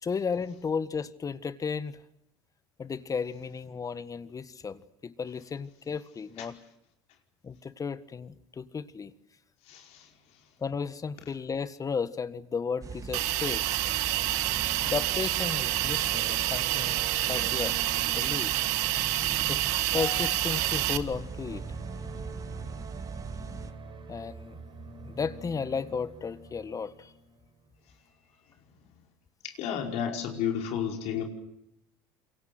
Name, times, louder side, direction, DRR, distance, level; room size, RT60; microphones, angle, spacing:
voice 1, 0.0-2.0 2.8-6.6 7.4-9.1 10.6-13.7 14.8-17.8 18.1-18.6 19.5-21.7 24.1-24.6 25.0-27.1 30.0-30.2, left 5 dB, 30° left, 1.6 m, -34 dB
sound 1, 12.8-23.7, right 5 dB, 30° right, 2.1 m, -42 dB
Hiss, 13.1-21.0, right 16 dB, 80° right, 1.7 m, -28 dB
sound 2, 13.4-27.6, right 3 dB, 45° right, 7.6 m, -44 dB
voice 2, 29.4-31.2, left 8 dB, 70° left, 5.0 m, -31 dB
27.5 x 23.5 x 7.8 m
supercardioid pair, 90°, 11 cm